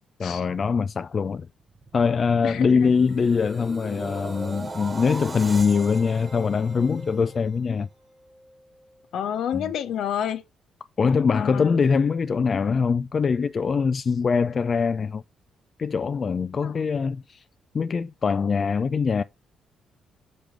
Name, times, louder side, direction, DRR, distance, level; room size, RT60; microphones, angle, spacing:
voice 1, 0.2-1.5 1.9-7.9 9.5-9.7 11.0-15.2 15.8-17.4 17.7-19.2, left 5 dB, 40° left, 0.3 m, -23 dB
sound 1, 1.6-7.9 8.3-8.6, right 2 dB, 30° right, 1.4 m, -39 dB
voice 2, 2.4-2.9 9.1-10.4 11.3-11.7 16.6-16.7, left 9 dB, 75° left, 0.9 m, -29 dB
5.3 x 5.0 x 6.0 m
cardioid pair, 90°, 0 cm